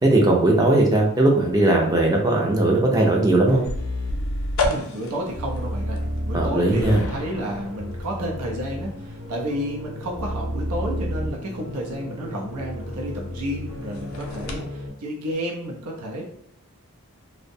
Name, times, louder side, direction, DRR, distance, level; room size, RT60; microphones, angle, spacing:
voice 1, 0.0-3.6 6.3-7.0, right 2 dB, 15° right, 0 dB, 0.4 m, -18 dB
sound 1, 3.5-14.6, left 2 dB, 65° left, 0.4 m, -33 dB
voice 2, 4.6-6.0 6.3-16.2, equal, 90° right, -2 dB, 0.5 m, -31 dB
sound 2, 5.3-14.9, equal, 50° right, 0.8 m, -32 dB
2.6 x 2.1 x 2.6 m, 0.70 s
head